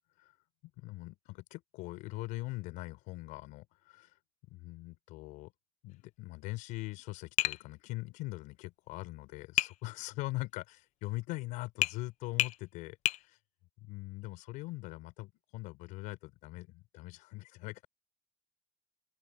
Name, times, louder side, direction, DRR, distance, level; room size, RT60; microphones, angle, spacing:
voice 1, 0.8-4.1 4.5-5.5 5.8-13.0 13.2-13.3 13.9-17.9, left 20 dB, 75° left, 5.9 m, -42 dB
Tap, 7.4-7.6 9.6-9.8 11.8-12.0 12.4-12.6 13.1-13.2, left 16 dB, 60° left, 0.9 m, -29 dB
cardioid pair, 135°, 13 cm